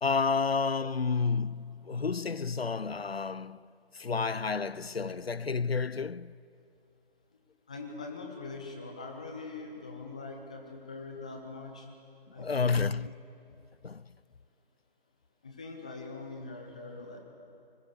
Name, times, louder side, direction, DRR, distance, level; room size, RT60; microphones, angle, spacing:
voice 1, 0.0-3.7 3.9-6.3 12.4-13.1 13.8-14.1, left 5 dB, 85° left, 0.6 m, -30 dB
voice 2, 7.7-11.9 12.3-12.9 15.4-17.2, left 3 dB, 5° left, 0.6 m, -42 dB
29.0 x 21.5 x 6.8 m
figure-of-eight pair, 150°, 30 cm